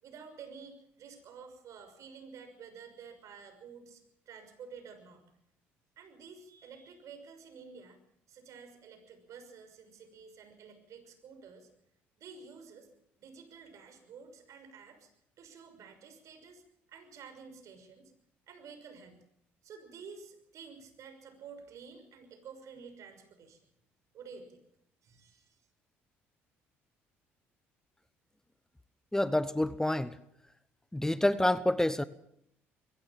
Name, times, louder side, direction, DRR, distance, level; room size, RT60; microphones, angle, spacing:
voice 1, 0.0-5.2 6.0-8.0 8.3-11.7 12.2-12.9 13.2-15.1 15.4-16.6 16.9-18.1 18.5-19.2 19.6-23.6 24.1-24.6 25.0-25.6, right 5 dB, 60° right, 6.1 m, -51 dB
voice 2, 29.1-30.1 30.9-32.0, left 1 dB, 10° left, 1.0 m, -28 dB
22.5 x 16.0 x 7.3 m
hypercardioid pair, 60°, 6 cm